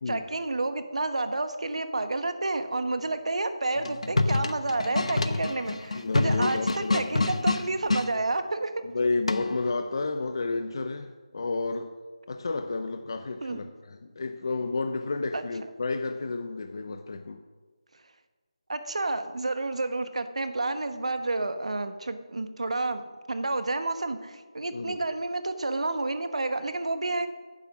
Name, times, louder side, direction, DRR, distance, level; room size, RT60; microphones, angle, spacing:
voice 1, 0.1-8.7 13.4-13.6 15.3-15.4 18.7-27.3, right 2 dB, 70° right, 9 dB, 1.2 m, -30 dB
sound 1, 3.8-8.1 9.3-9.7, left 2 dB, 75° left, 0.9 m, -27 dB
voice 2, 5.9-7.2 8.8-11.9 12.3-17.4 24.7-25.0, left 3 dB, 40° left, 7 dB, 0.6 m, -31 dB
10.0 x 9.3 x 6.1 m, 1.4 s
figure-of-eight pair, 170°, 3 cm